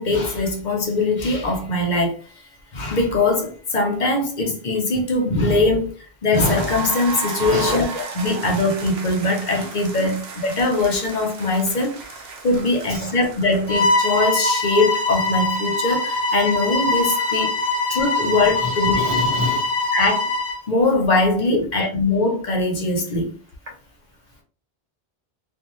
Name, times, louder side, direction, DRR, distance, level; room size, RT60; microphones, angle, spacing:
voice 1, 0.0-2.2 2.7-17.6 17.9-19.0 19.9-20.3 20.7-23.3, left 2 dB, 50° left, 0.7 m, -21 dB
sound 1, 6.3-14.5, right 4 dB, 80° right, 0.9 m, -34 dB
voice 2, 7.4-7.8 10.0-10.1 12.9-13.1 18.5-19.7 21.5-21.6, left 2 dB, 40° right, 1.1 m, -27 dB
Bowed string instrument, 13.7-20.6, left 2 dB, 5° right, 1.3 m, -22 dB
2.6 x 2.3 x 3.0 m
omnidirectional pair, 1.1 m